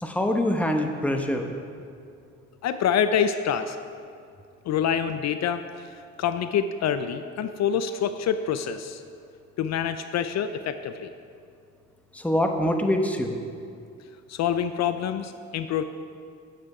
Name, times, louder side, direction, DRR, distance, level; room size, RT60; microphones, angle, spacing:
voice 1, 0.0-1.5 12.1-13.4, left 1 dB, 5° left, 4 dB, 0.9 m, -24 dB
voice 2, 2.6-3.8 4.7-9.0 9.6-11.1 14.3-15.8, left 8 dB, 60° left, 10 dB, 0.5 m, -26 dB
9.3 x 7.5 x 4.8 m, 2.3 s
cardioid pair, 90°, 30 cm